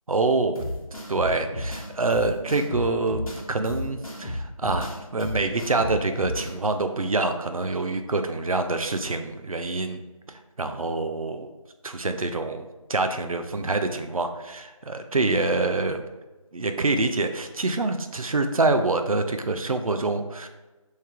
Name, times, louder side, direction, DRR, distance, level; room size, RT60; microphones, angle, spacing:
voice 1, 0.1-0.6 1.1-10.0 10.3-11.5 11.8-16.0 16.5-20.5, right 3 dB, 75° right, 7 dB, 0.5 m, -26 dB
sound 1, 0.5-6.5, left 1 dB, 75° left, 1.0 m, -33 dB
3.2 x 2.7 x 3.5 m, 1.1 s
figure-of-eight pair, 170°, 18 cm